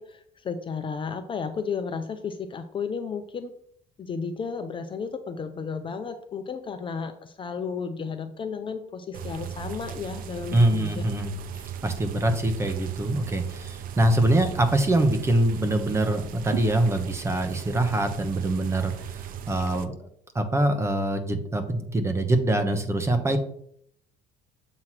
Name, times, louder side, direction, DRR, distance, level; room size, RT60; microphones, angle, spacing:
voice 1, 0.0-3.5 4.0-11.0, left 5 dB, 30° left, 8 dB, 0.5 m, -33 dB
sound 1, 9.1-19.9, right 9 dB, 60° right, 0.6 m, -37 dB
voice 2, 10.5-11.4 11.8-20.1 20.3-23.4, right 1 dB, 15° right, 7 dB, 0.9 m, -24 dB
7.5 x 3.1 x 5.8 m, 0.67 s
cardioid pair, 120°, 17 cm